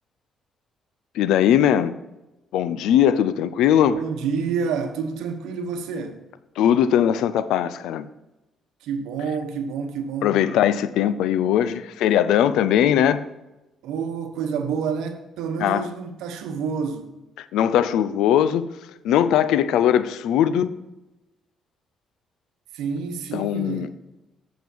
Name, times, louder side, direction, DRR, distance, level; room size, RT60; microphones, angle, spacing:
voice 1, 1.1-1.9 2.5-4.0 6.6-8.1 10.2-13.2 15.6-15.9 17.5-18.7 19.0-20.7 23.3-23.9, left 10 dB, 90° left, 0.5 m, -20 dB
voice 2, 3.9-6.2 8.8-10.4 13.8-17.2 22.7-23.9, right 6 dB, 90° right, 1.0 m, -28 dB
8.1 x 7.2 x 4.6 m
cardioid pair, 90°, 0 cm